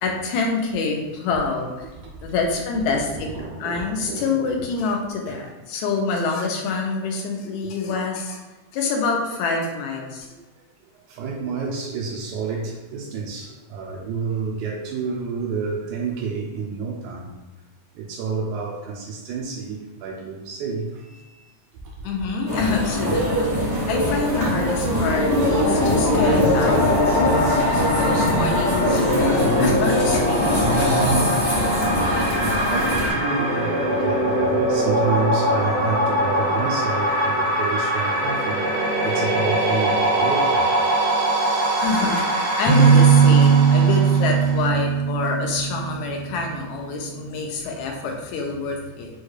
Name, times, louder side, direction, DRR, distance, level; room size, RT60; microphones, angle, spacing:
voice 1, 0.0-1.9 2.2-3.3 3.6-8.4 8.7-10.4 22.0-31.0 41.8-49.1, left 4 dB, 80° left, 1 dB, 2.0 m, -26 dB
voice 2, 2.9-4.5 5.7-5.8 7.9-8.0 11.1-17.3 17.9-21.5 22.0-22.1 23.1-23.2 32.7-40.7 41.9-42.1 47.3-47.4, right 4 dB, 85° right, -3 dB, 2.0 m, -29 dB
sound 1, 22.5-33.1, equal, 40° left, 0.5 m, -22 dB
sound 2, 24.8-44.6, equal, 60° right, 0.6 m, -22 dB
sound 3, 42.7-46.3, right 6 dB, 60° left, 1.1 m, -17 dB
6.2 x 2.3 x 3.2 m, 1.2 s
omnidirectional pair, 3.5 m